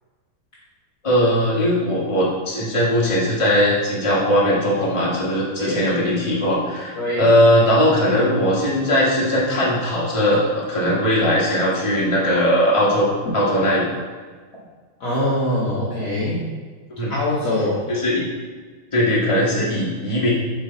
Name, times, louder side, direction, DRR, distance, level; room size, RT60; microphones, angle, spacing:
voice 1, 1.0-13.8 17.0-17.1 17.9-18.2 18.9-20.3, equal, 15° left, -6 dB, 1.4 m, -19 dB
voice 2, 7.0-7.3 15.0-16.5 17.1-17.8, left 1 dB, 50° left, -7 dB, 1.3 m, -23 dB
8.3 x 3.9 x 3.9 m, 1.5 s
omnidirectional pair, 2.3 m